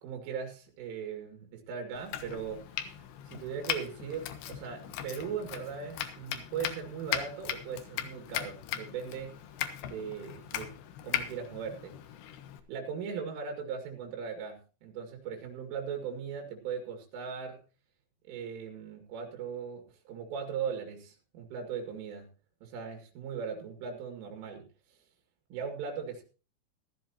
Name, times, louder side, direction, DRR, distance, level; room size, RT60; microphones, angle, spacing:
voice 1, 0.0-9.4 9.8-10.7 11.0-11.9 12.7-17.6 18.2-22.3 22.6-25.0 25.5-26.2, right 6 dB, 85° right, 3 dB, 4.8 m, -39 dB
Domestic sounds home sounds, 2.0-12.6, left 11 dB, 70° left, 3.0 m, -38 dB
15.5 x 14.0 x 2.9 m, 0.34 s
omnidirectional pair, 5.6 m